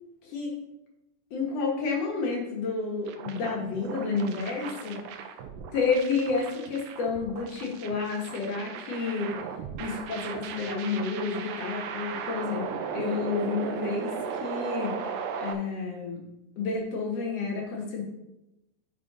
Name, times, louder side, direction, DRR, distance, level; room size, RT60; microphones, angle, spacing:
voice 1, 0.2-0.5 1.3-5.0 5.7-9.4 9.8-16.2 16.6-18.0, left 4 dB, 65° left, -1 dB, 1.6 m, -30 dB
sound 1, 3.1-15.5, right 6 dB, 85° right, 1.9 m, -37 dB
11.0 x 3.7 x 4.8 m, 0.92 s
omnidirectional pair, 4.8 m